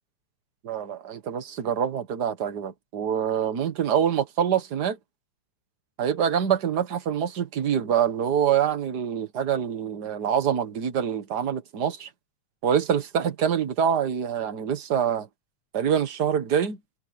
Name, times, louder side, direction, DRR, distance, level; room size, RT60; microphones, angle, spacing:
voice 1, 0.6-5.0 6.0-12.1 12.6-15.3 15.7-16.8, right 8 dB, 45° right, 1.6 m, -25 dB
omnidirectional pair, 3.3 m